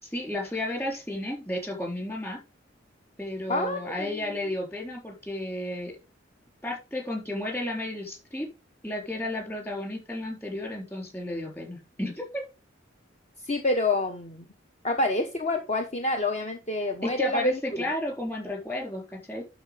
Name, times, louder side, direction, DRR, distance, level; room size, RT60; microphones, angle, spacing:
voice 1, 0.0-2.4 3.2-6.0 6.6-8.5 8.8-12.4 17.0-19.4, left 1 dB, 10° left, 1 dB, 3.9 m, -33 dB
voice 2, 3.5-4.2 13.4-14.4 14.8-17.9, left 2 dB, 35° left, 5 dB, 1.1 m, -28 dB
11.5 x 4.4 x 5.3 m, 0.29 s
head